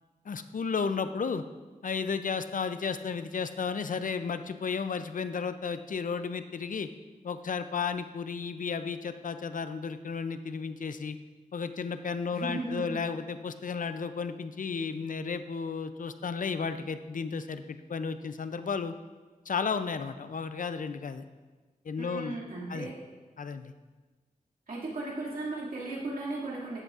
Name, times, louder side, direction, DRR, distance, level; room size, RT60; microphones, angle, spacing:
voice 1, 0.3-1.4 1.8-6.9 7.2-11.2 11.5-18.9 19.5-21.2 21.8-22.4 22.7-22.9 23.4-23.7, left 5 dB, 60° left, 11 dB, 0.5 m, -33 dB
voice 2, 12.3-12.9 22.0-22.9 24.7-26.8, right 2 dB, 75° right, -5 dB, 2.3 m, -36 dB
13.5 x 7.9 x 2.5 m, 1.3 s
wide cardioid pair, 95°, 15 cm